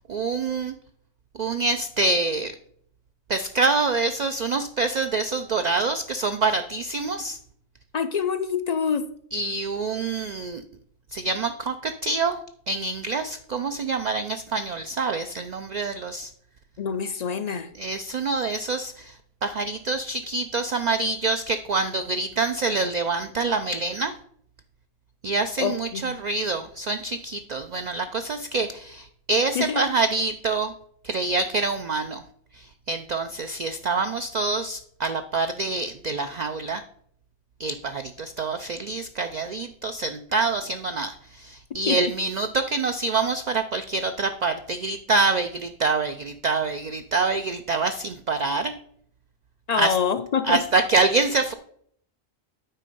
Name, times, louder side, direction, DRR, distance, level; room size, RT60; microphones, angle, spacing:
voice 1, 0.1-0.7 1.4-2.5 3.3-7.4 9.3-10.6 11.1-12.4 12.7-16.3 17.8-19.2 19.4-24.2 25.2-30.7 31.0-32.2 32.5-36.8 37.6-48.7 49.8-50.0 50.4-51.5, right 3 dB, 55° right, 8 dB, 0.5 m, -26 dB
voice 2, 7.9-9.1 16.8-17.7 25.6-26.2 29.6-29.8 41.9-42.0 49.7-50.6, left 7 dB, 55° left, 10 dB, 0.4 m, -26 dB
9.1 x 4.2 x 5.3 m, 0.65 s
omnidirectional pair, 1.1 m